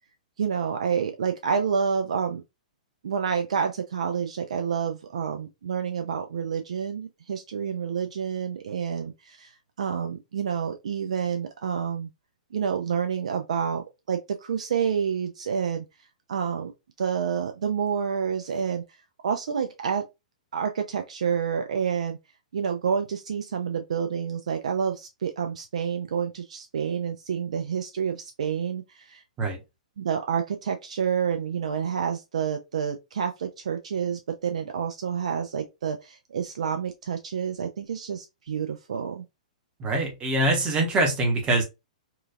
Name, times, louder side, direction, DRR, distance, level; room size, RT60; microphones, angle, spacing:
voice 1, 0.4-2.4 3.0-9.5 9.8-12.1 12.5-15.9 16.3-16.7 17.0-18.8 19.2-20.0 20.5-22.2 22.5-29.2 30.0-39.2, right 7 dB, 60° right, 0.3 m, -28 dB
voice 2, 39.8-41.6, right 2 dB, 20° right, 0.9 m, -24 dB
2.9 x 2.3 x 2.3 m
figure-of-eight pair, 110°, 4 cm